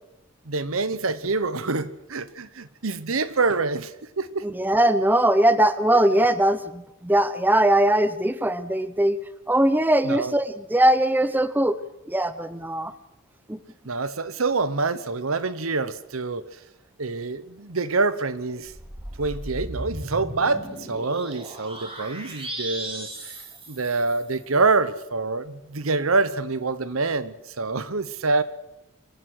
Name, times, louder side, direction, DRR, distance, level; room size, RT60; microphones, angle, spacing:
voice 1, 0.5-4.5 5.9-6.0 10.0-10.3 13.8-16.5 17.0-18.7 19.2-23.4 23.7-28.4, right 3 dB, 80° right, 15 dB, 1.1 m, -26 dB
voice 2, 4.4-9.2 9.5-11.8 12.1-12.9 13.5-13.6, right 1 dB, 10° right, 13 dB, 0.7 m, -20 dB
sound 1, 18.6-24.4, right 1 dB, 25° right, 4.9 m, -37 dB
25.0 x 14.5 x 7.9 m, 0.89 s
head